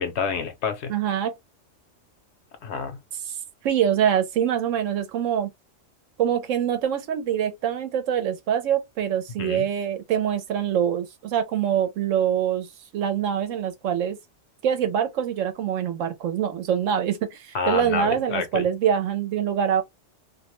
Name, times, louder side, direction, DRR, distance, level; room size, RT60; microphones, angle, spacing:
voice 1, 0.0-0.9 2.6-3.0 9.4-9.7 17.5-18.7, left 5 dB, 65° left, 0.9 m, -28 dB
voice 2, 0.9-1.3 3.3-3.4 3.6-5.5 6.2-12.7 12.9-14.2 14.6-19.8, right 9 dB, 85° right, 1.0 m, -24 dB
2.5 x 2.1 x 3.0 m
omnidirectional pair, 1.3 m